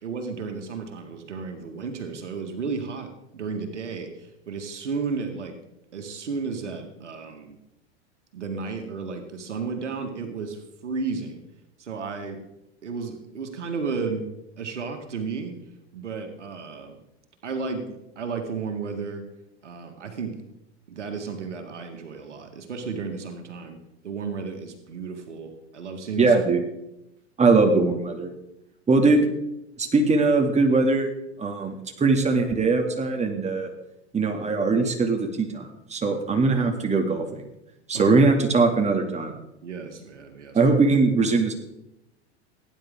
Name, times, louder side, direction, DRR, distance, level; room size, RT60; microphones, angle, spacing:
voice 1, 0.0-5.6 5.9-7.6 8.3-11.4 11.8-12.4 12.8-14.3 14.6-15.6 15.9-17.0 17.4-19.2 19.6-20.4 20.9-23.8 24.0-26.4 27.4-27.6 37.9-38.2 39.6-40.7, right 5 dB, 85° right, 5 dB, 1.9 m, -33 dB
voice 2, 26.2-26.6 27.4-28.3 28.9-29.3 29.8-31.1 31.4-33.7 34.1-37.3 37.9-39.3 40.5-41.5, right 3 dB, 20° right, 3 dB, 2.4 m, -21 dB
17.5 x 10.0 x 3.7 m, 0.88 s
hypercardioid pair, 90°, 35 cm